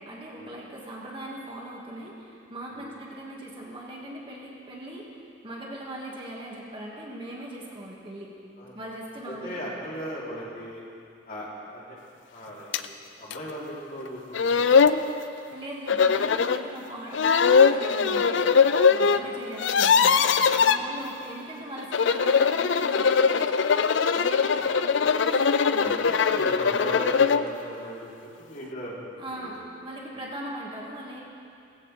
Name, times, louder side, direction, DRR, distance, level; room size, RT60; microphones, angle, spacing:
voice 1, 0.1-5.1 5.4-8.3 8.7-9.7 15.5-26.0 29.2-31.2, right 1 dB, 25° right, -3 dB, 1.7 m, -40 dB
voice 2, 9.2-10.9 11.2-12.0 12.3-12.9 13.2-15.0 15.9-16.4 19.0-19.2 20.7-20.9 24.9-25.1 25.8-28.1 28.4-29.5 30.1-30.2, equal, 50° left, -6 dB, 3.3 m, -38 dB
sound 1, 12.7-12.9 13.3-13.4 14.1-14.2 14.3-15.0 15.9-16.6 17.1-19.2 19.5-20.8 21.8-27.5, left 6 dB, 70° left, 0.4 m, -21 dB
17.0 x 16.5 x 3.3 m, 2.5 s
head